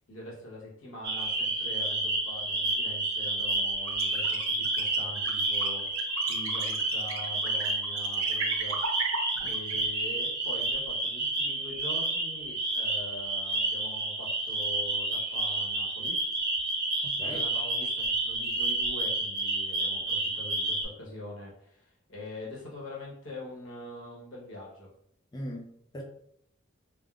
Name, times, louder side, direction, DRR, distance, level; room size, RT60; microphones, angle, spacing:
voice 1, 0.1-9.2 9.4-16.2 17.2-24.9, left 1 dB, 70° left, -4 dB, 1.0 m, -44 dB
sound 1, 1.0-20.8, right 2 dB, 55° right, 0.8 m, -30 dB
sound 2, 3.9-9.7, right 5 dB, 85° right, 0.5 m, -35 dB
voice 2, 17.0-17.4 25.3-26.0, equal, 20° left, 0 dB, 0.3 m, -40 dB
3.4 x 2.0 x 2.3 m, 0.73 s
head